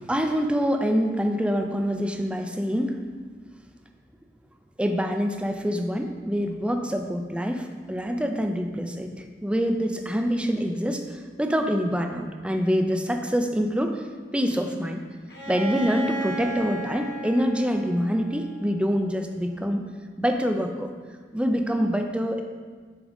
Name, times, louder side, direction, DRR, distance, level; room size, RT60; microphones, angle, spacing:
voice 1, 0.0-3.0 4.8-14.1 14.3-15.0 15.5-19.8 20.2-20.9 21.3-22.4, equal, 5° right, 4 dB, 0.5 m, -25 dB
Bowed string instrument, 15.3-19.1, right 2 dB, 65° left, 1.2 m, -35 dB
7.1 x 3.8 x 5.1 m, 1.5 s
head